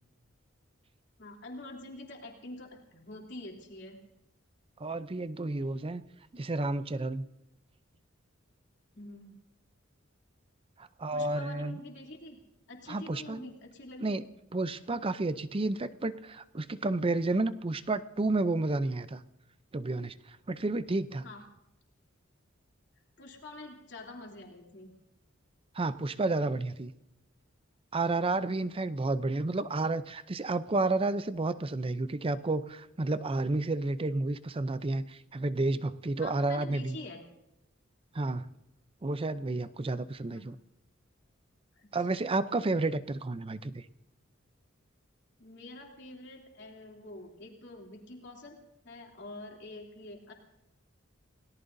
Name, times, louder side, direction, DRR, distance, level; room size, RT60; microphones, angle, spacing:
voice 1, 1.2-4.0 8.9-9.4 11.1-12.4 12.7-14.1 21.2-21.4 23.2-24.9 36.2-37.2 40.3-40.5 41.8-41.9 45.4-48.6 48.8-50.3, left 2 dB, 60° left, 0 dB, 3.0 m, -46 dB
voice 2, 4.8-6.0 6.3-7.2 10.8-11.8 12.9-13.4 14.0-14.2 14.5-19.2 19.7-21.2 25.7-26.9 27.9-37.0 38.1-38.5 39.0-40.6 41.9-43.8, right 2 dB, 30° right, 14 dB, 0.5 m, -31 dB
29.5 x 18.0 x 2.7 m, 0.88 s
head